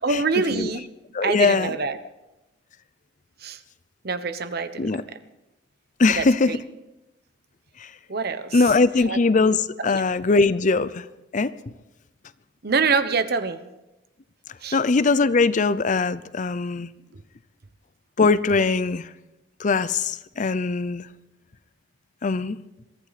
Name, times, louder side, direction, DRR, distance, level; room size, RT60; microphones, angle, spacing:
voice 1, 0.0-0.8 1.2-2.0 3.4-3.6 4.0-5.2 6.2-6.6 8.1-8.6 9.1-9.5 9.8-9.9 12.6-13.6 14.6-14.8, right 4 dB, 55° right, 11 dB, 1.0 m, -25 dB
voice 2, 1.1-1.7 4.8-5.0 6.0-6.6 7.8-7.9 8.5-11.0 11.3-11.5 14.7-16.9 18.2-19.1 19.6-21.1 22.2-22.6, left 3 dB, 40° left, 16 dB, 0.5 m, -21 dB
22.5 x 14.5 x 4.2 m, 0.96 s
head